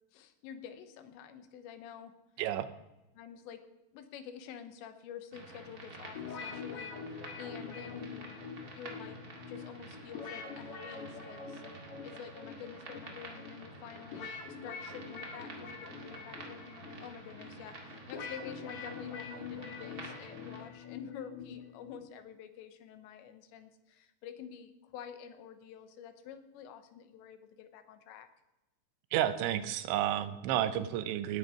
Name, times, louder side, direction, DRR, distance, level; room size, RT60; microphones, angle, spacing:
voice 1, 0.1-2.1 3.1-8.4 8.7-9.2 9.5-11.6 12.0-14.3 14.6-28.3, left 8 dB, 90° left, 9 dB, 3.3 m, -48 dB
voice 2, 2.4-2.7 29.1-31.4, right 11 dB, 90° right, 12 dB, 3.1 m, -31 dB
sound 1, 5.3-20.6, right 2 dB, 35° right, 1.5 m, -50 dB
sound 2, 6.1-22.1, left 5 dB, 65° left, 1.4 m, -45 dB
18.0 x 9.7 x 4.9 m, 0.98 s
omnidirectional pair, 5.1 m